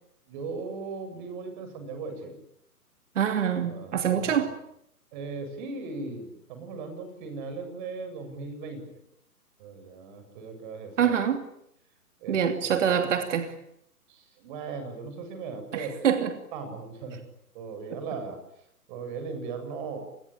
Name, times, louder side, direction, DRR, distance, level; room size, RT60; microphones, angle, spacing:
voice 1, 0.3-2.4 3.6-4.5 5.1-8.9 9.6-11.1 12.2-13.1 14.1-15.9 16.5-17.2 17.5-18.4 18.9-20.0, right 4 dB, 30° right, 7.9 m, -38 dB
voice 2, 3.1-4.6 11.0-11.4 12.3-13.5 15.7-16.3 17.9-18.0, right 8 dB, 50° right, 2.9 m, -25 dB
27.5 x 21.0 x 8.9 m
figure-of-eight pair, 140°, 45 cm